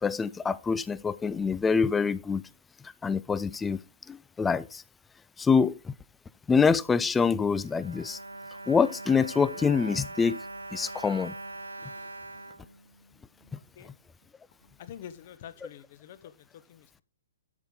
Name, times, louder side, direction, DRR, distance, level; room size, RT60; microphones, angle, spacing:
voice 1, 0.0-2.4 3.0-3.8 4.1-4.8 5.4-5.9 6.5-8.2 8.7-10.4 10.7-11.3, left 5 dB, 10° left, 0.4 m, -25 dB
Bowed string instrument, 7.3-13.5 14.2-14.3 14.6-14.8, right 2 dB, 80° right, 0.9 m, -42 dB
voice 2, 14.8-16.3 16.7-17.0, left 9 dB, 40° left, 1.2 m, -46 dB
12.5 x 6.9 x 3.8 m
figure-of-eight pair, 120°, 0 cm